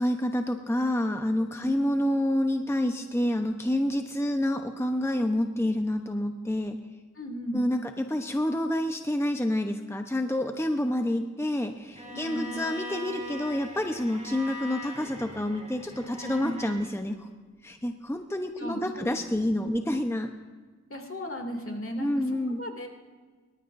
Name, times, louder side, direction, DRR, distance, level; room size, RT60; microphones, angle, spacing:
voice 1, 0.0-6.8 7.5-17.3 17.6-20.3 22.0-22.6, left 1 dB, 10° left, 5 dB, 1.0 m, -28 dB
voice 2, 7.1-7.6 12.0-12.5 16.2-16.5 18.6-19.1 19.6-19.7 20.9-22.9, equal, 45° left, 2 dB, 2.7 m, -36 dB
Bowed string instrument, 12.0-16.9, left 1 dB, 25° right, 2.9 m, -41 dB
25.0 x 13.5 x 2.7 m, 1.4 s
cardioid pair, 40°, 30 cm